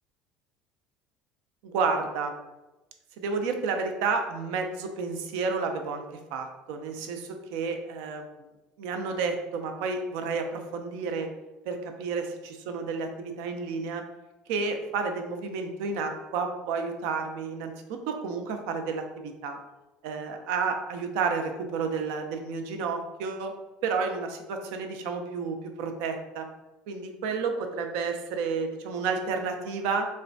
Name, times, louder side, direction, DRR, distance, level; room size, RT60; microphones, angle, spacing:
voice 1, 1.6-2.3 3.2-6.0 6.3-8.3 8.8-11.3 11.7-14.0 14.5-19.6 20.0-23.5 23.8-26.5 26.9-30.1, right 4 dB, 80° right, 5 dB, 0.4 m, -31 dB
3.1 x 2.1 x 2.5 m, 1.1 s
cardioid pair, 120°, 3 cm